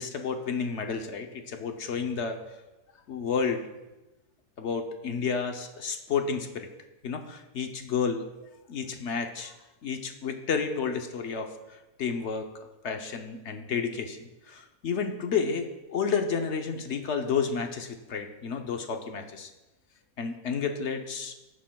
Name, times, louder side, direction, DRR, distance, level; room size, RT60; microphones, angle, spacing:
voice 1, 0.0-2.4 3.1-3.7 4.6-6.7 7.0-8.2 8.7-9.6 9.8-12.5 12.8-19.5 20.2-21.3, left 6 dB, 60° left, 5 dB, 0.9 m, -31 dB
16.0 x 7.4 x 2.3 m, 1.1 s
omnidirectional pair, 1.5 m